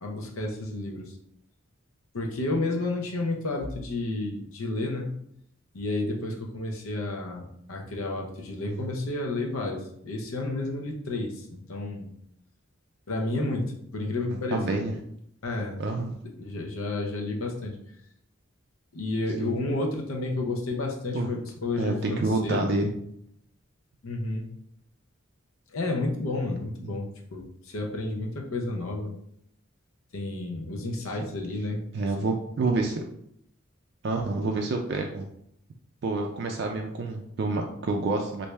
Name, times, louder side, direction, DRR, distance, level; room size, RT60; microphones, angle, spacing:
voice 1, 0.0-1.1 2.1-5.1 5.7-12.1 13.1-15.0 15.4-15.8 16.4-17.8 18.9-22.7 24.0-24.5 25.7-29.1 30.1-31.8 32.2-32.3, left 2 dB, 85° left, 1 dB, 0.7 m, -31 dB
voice 2, 14.5-14.9 15.8-16.1 19.4-19.5 21.1-21.3 21.8-22.9 31.9-33.0 34.0-35.3 36.0-38.5, right 3 dB, 50° right, 2 dB, 0.3 m, -28 dB
3.3 x 2.6 x 3.1 m, 0.72 s
head